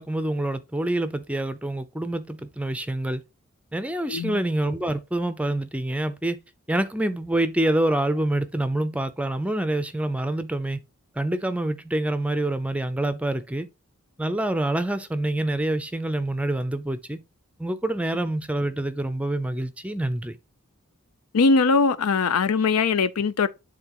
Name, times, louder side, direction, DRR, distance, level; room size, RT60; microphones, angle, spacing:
voice 1, 0.0-3.2 3.7-6.4 6.7-10.8 11.2-13.7 14.2-17.2 17.6-20.4, right 1 dB, 5° right, 0.5 m, -26 dB
voice 2, 4.1-4.4 21.3-23.5, left 4 dB, 85° left, 0.5 m, -21 dB
10.0 x 3.8 x 3.0 m
head